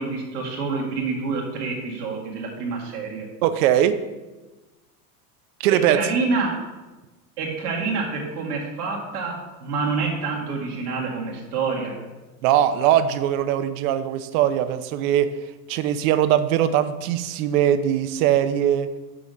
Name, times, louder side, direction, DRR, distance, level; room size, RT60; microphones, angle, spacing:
voice 1, 0.0-3.3 5.7-6.5 7.4-12.0, right 4 dB, 80° right, -2 dB, 2.0 m, -27 dB
voice 2, 3.4-4.0 5.6-6.0 12.4-15.3 15.7-18.9, right 11 dB, 65° right, 11 dB, 0.8 m, -21 dB
6.1 x 5.2 x 6.3 m, 1.2 s
hypercardioid pair, 90°, 45 cm